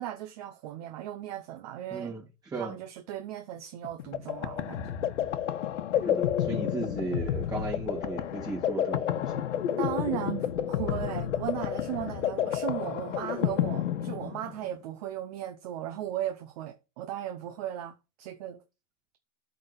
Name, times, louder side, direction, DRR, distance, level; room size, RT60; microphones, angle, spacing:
voice 1, 0.0-2.1 2.5-5.0 9.8-18.6, right 12 dB, 35° right, 0.7 m, -36 dB
voice 2, 1.9-2.2 2.5-2.8 6.0-9.6, right 3 dB, 10° right, 3.0 m, -36 dB
sound 1, 3.8-14.7, left 10 dB, 80° left, 1.2 m, -30 dB
8.5 x 3.8 x 6.5 m
supercardioid pair, 175°, 36 cm